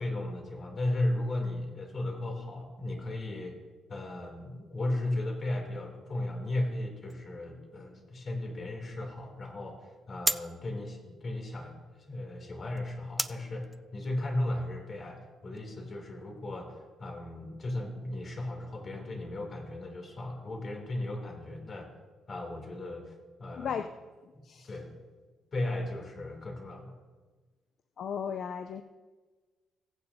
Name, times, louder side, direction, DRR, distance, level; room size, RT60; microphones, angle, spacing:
voice 1, 0.0-3.6 3.9-11.8 12.1-21.9 22.3-23.7 24.3-24.9 25.5-26.9, left 1 dB, 45° left, 2.7 m, -35 dB
sound 1, 7.1-15.7, right 1 dB, 10° right, 0.3 m, -40 dB
voice 2, 23.6-23.9 24.2-24.7 28.0-28.8, left 7 dB, 60° left, 0.4 m, -36 dB
16.5 x 9.2 x 2.7 m
cardioid pair, 90°, 0 cm